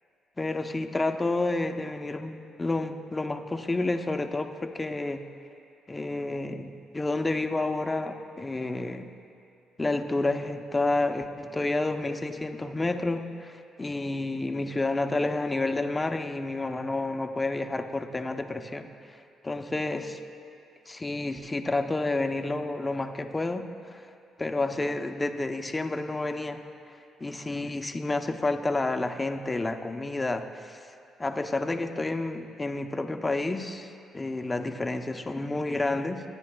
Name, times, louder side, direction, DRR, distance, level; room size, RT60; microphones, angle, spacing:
voice 1, 0.4-5.2 5.9-9.1 9.8-19.2 19.4-20.2 20.9-24.1 24.4-26.6 27.2-30.8 31.2-36.2, left 2 dB, 20° left, 6 dB, 0.7 m, -30 dB
25.5 x 9.8 x 2.3 m, 2.6 s
cardioid pair, 90°, 0 cm